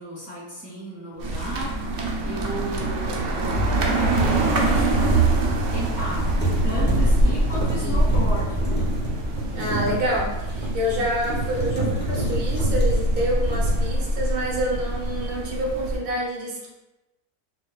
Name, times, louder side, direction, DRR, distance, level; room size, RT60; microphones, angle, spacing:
voice 1, 0.0-1.8 2.2-5.2 5.7-6.3 6.6-8.8 9.5-9.9, equal, 45° left, -7 dB, 1.1 m, -34 dB
sound 1, 1.2-16.0, right 2 dB, 65° right, 0.8 m, -24 dB
sound 2, 2.4-2.6 5.7-6.1 6.4-14.6 14.9-15.3, right 2 dB, 10° left, 0.5 m, -30 dB
sound 3, 3.5-10.2, left 1 dB, 60° left, 1.4 m, -31 dB
voice 2, 7.7-8.0 9.5-16.7, equal, 85° right, -3 dB, 1.4 m, -27 dB
4.6 x 2.2 x 2.3 m, 1.0 s
omnidirectional pair, 1.6 m